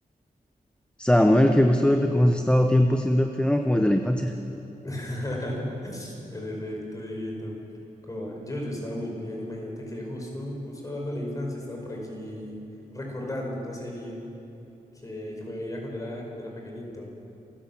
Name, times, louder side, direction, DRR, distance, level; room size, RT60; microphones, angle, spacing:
voice 1, 1.0-4.3, left 1 dB, 5° left, 5 dB, 0.8 m, -20 dB
voice 2, 4.8-7.6 8.0-12.5 12.9-14.2 15.0-17.1, left 1 dB, 20° left, -1 dB, 5.1 m, -34 dB
27.5 x 16.5 x 7.3 m, 2.9 s
wide cardioid pair, 160°, 15 cm